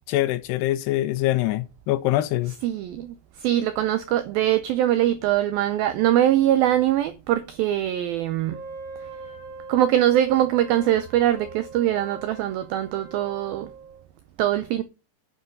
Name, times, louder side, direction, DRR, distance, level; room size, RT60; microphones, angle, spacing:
voice 1, 0.1-2.5, left 15 dB, 80° left, 2.5 m, -24 dB
voice 2, 2.6-8.6 9.7-13.7 14.4-14.8, right 12 dB, 90° right, 2.1 m, -22 dB
Wind instrument woodwind instrument, 8.5-14.1, right 4 dB, 30° right, 3.1 m, -42 dB
9.4 x 7.1 x 5.4 m
omnidirectional pair, 5.1 m